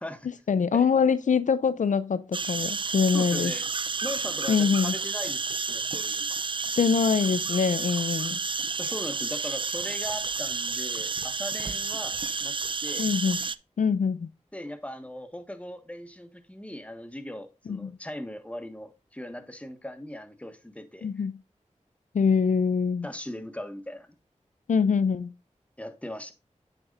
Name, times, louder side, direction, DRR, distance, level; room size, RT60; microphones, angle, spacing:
voice 1, 0.5-3.5 4.5-4.9 6.8-8.4 13.0-13.4 13.8-14.3 17.7-17.9 21.0-21.3 22.1-23.1 24.7-25.3, left 6 dB, 80° left, 0.4 m, -24 dB
sound 1, 2.3-13.6, right 4 dB, 40° right, 0.4 m, -31 dB
voice 2, 3.1-3.6 4.0-5.4 5.7-6.3 8.8-12.5 12.8-13.0 14.5-21.3 23.0-24.2 25.8-26.3, left 1 dB, 10° left, 1.3 m, -39 dB
8.6 x 6.7 x 2.4 m
wide cardioid pair, 45°, 13 cm